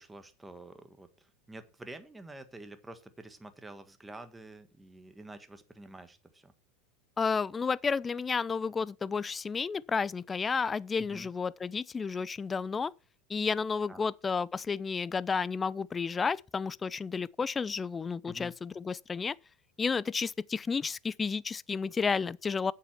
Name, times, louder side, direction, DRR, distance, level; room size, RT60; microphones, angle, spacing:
voice 1, 0.0-6.5 11.0-11.3 13.9-14.1 18.2-18.5, right 2 dB, 10° right, 1.5 m, -48 dB
voice 2, 7.2-12.9 13.3-19.4 19.8-22.7, left 5 dB, 20° left, 0.4 m, -31 dB
8.5 x 7.6 x 6.0 m
hypercardioid pair, 85°, 0 cm